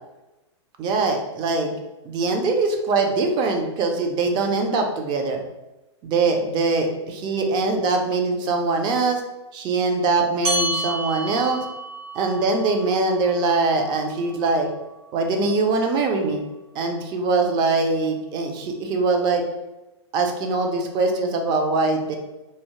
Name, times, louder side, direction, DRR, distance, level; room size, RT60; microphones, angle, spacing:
voice 1, 0.8-1.7 2.0-5.4 6.0-6.9 7.2-9.2 9.5-11.7 12.1-14.7 15.1-16.4 16.7-19.4 20.1-22.2, right 3 dB, 30° right, 4 dB, 0.5 m, -22 dB
sound 1, 10.4-15.3, right 1 dB, 65° right, 0.9 m, -31 dB
2.7 x 2.1 x 3.0 m, 1.0 s
hypercardioid pair, 120°, 15 cm